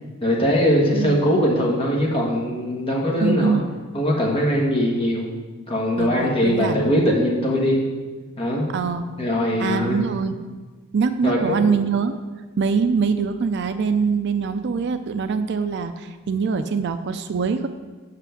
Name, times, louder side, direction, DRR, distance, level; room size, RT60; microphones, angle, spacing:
voice 1, 0.2-3.6 3.9-5.3 5.7-7.8 8.4-8.7 9.2-10.0 11.2-11.7, equal, 25° left, -2 dB, 1.5 m, -21 dB
voice 2, 0.9-1.2 3.2-3.7 6.0-7.0 8.7-9.1 9.6-10.4 10.9-12.2 12.6-17.7, right 5 dB, 50° right, 10 dB, 0.4 m, -23 dB
6.0 x 5.8 x 7.1 m, 1.3 s
head